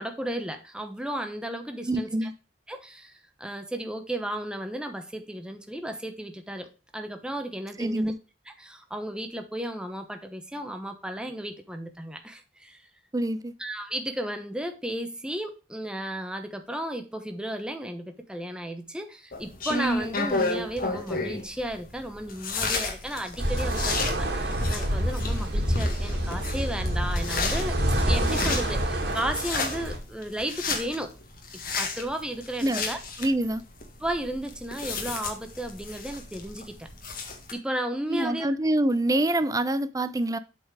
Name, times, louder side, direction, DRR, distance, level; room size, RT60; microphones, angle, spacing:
voice 1, 0.0-2.3 2.7-3.1 3.4-8.1 8.6-12.8 13.6-27.8 28.0-31.1 31.5-33.0 34.0-36.9 37.5-38.6, right 1 dB, 5° right, 1.0 m, -34 dB
voice 2, 1.9-2.3 7.8-8.2 13.1-13.5 32.6-32.8 33.2-33.6 38.1-40.4, right 1 dB, 20° right, 0.6 m, -25 dB
sound 1, 19.3-37.5, left 3 dB, 55° left, 1.8 m, -33 dB
sound 2, 23.4-30.0, equal, 70° right, 2.2 m, -27 dB
8.0 x 4.3 x 4.9 m
head